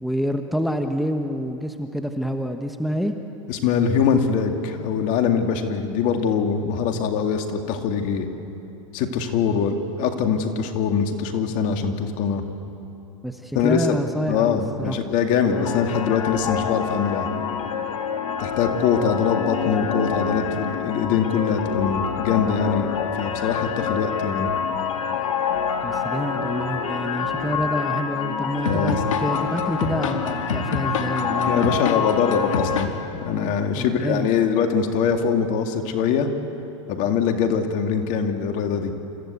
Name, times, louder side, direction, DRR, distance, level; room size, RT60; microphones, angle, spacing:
voice 1, 0.0-3.1 13.2-15.0 25.8-31.8 33.8-34.3, equal, ahead, 6 dB, 1.2 m, -27 dB
voice 2, 3.5-8.3 8.9-12.4 13.5-14.0 14.3-17.3 18.4-24.5 28.6-29.0 31.4-36.3 36.9-38.9, left 6 dB, 50° left, 5 dB, 2.3 m, -23 dB
sound 1, 15.5-32.9, left 6 dB, 80° left, 2.0 m, -26 dB
27.5 x 15.5 x 8.4 m, 2.9 s
hypercardioid pair, 105°, 16 cm